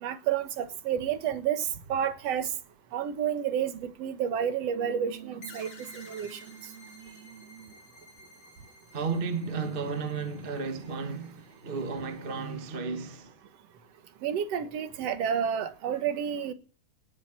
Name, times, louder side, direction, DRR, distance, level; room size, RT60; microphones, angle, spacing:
voice 1, 0.0-2.5 2.9-5.7 5.9-6.4 14.2-16.5, right 8 dB, 55° right, 2.1 m, -30 dB
sound 1, 4.7-7.9, right 12 dB, 80° right, 3.7 m, -48 dB
sound 2, 5.4-12.6, left 2 dB, 50° left, 4.9 m, -53 dB
voice 2, 8.9-13.4, right 4 dB, 25° right, 1.3 m, -34 dB
19.5 x 9.1 x 7.4 m
omnidirectional pair, 3.9 m